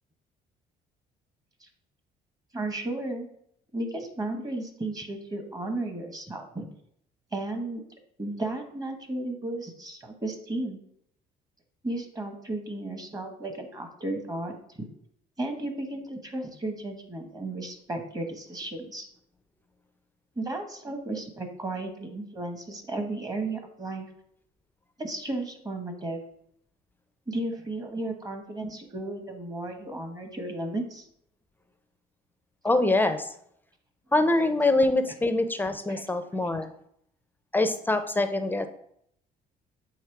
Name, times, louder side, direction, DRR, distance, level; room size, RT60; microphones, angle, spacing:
voice 1, 2.5-3.3 3.7-6.6 7.3-7.8 8.2-10.8 11.8-14.9 15.4-19.1 20.4-24.1 25.0-26.2 27.3-31.1 35.9-36.0, right 2 dB, 20° right, 5 dB, 1.1 m, -34 dB
voice 2, 32.6-33.3 34.1-36.7 37.5-38.7, left 2 dB, 10° left, 9 dB, 0.5 m, -24 dB
7.2 x 3.1 x 4.6 m, 0.71 s
cardioid pair, 110°, 17 cm